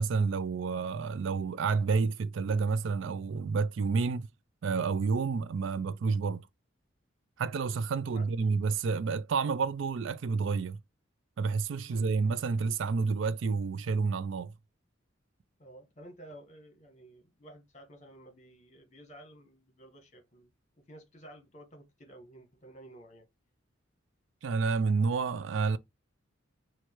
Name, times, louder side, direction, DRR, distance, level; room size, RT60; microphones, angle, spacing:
voice 1, 0.0-4.3 4.6-6.5 7.4-10.8 11.4-14.5 24.4-25.8, right 4 dB, 65° right, 0.4 m, -29 dB
voice 2, 15.6-20.5 20.7-23.3, right 1 dB, 35° left, 1.3 m, -52 dB
4.6 x 2.3 x 4.4 m
head